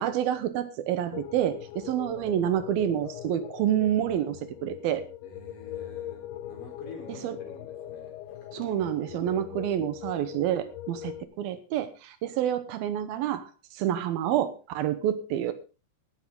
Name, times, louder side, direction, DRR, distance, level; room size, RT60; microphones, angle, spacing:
voice 1, 0.0-5.1 7.1-7.4 8.5-15.5, right 11 dB, 75° right, 12 dB, 2.8 m, -28 dB
sound 1, 1.1-11.2, left 11 dB, 85° left, 2.8 m, -41 dB
voice 2, 5.2-8.5, left 4 dB, 60° left, 2 dB, 5.5 m, -48 dB
17.0 x 11.5 x 3.7 m, 0.31 s
omnidirectional pair, 4.4 m